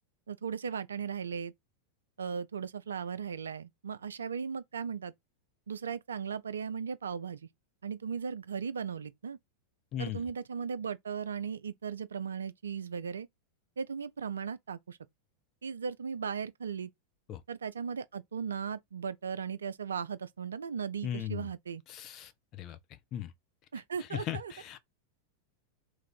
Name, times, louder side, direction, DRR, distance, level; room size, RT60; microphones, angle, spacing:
voice 1, 0.3-1.5 2.2-5.1 5.7-7.5 7.8-9.4 10.0-13.3 13.8-15.0 15.6-16.9 17.5-21.8 23.7-24.5, right 6 dB, 70° right, 0.3 m, -37 dB
voice 2, 21.0-21.5 21.9-22.8 23.1-23.3 24.1-24.8, left 11 dB, 35° left, 0.5 m, -37 dB
3.1 x 2.5 x 4.3 m
figure-of-eight pair, 90°, 0 cm